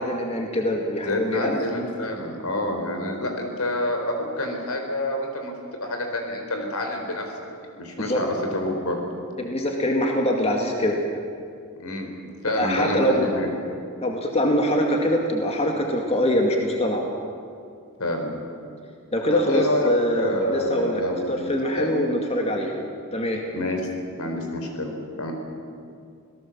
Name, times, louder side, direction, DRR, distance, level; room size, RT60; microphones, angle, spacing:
voice 1, 0.0-1.6 8.0-8.2 9.4-11.0 12.6-13.3 14.0-17.0 19.1-21.0 21.3-22.7 23.1-23.4, equal, 30° left, 1 dB, 2.1 m, -23 dB
voice 2, 1.0-7.2 7.8-9.0 11.8-12.1 12.4-13.5 18.0-18.3 19.3-22.1 23.5-23.8 24.1-24.9 25.2-25.3, left 1 dB, 75° left, 3 dB, 4.4 m, -27 dB
27.0 x 17.5 x 7.4 m, 2.4 s
head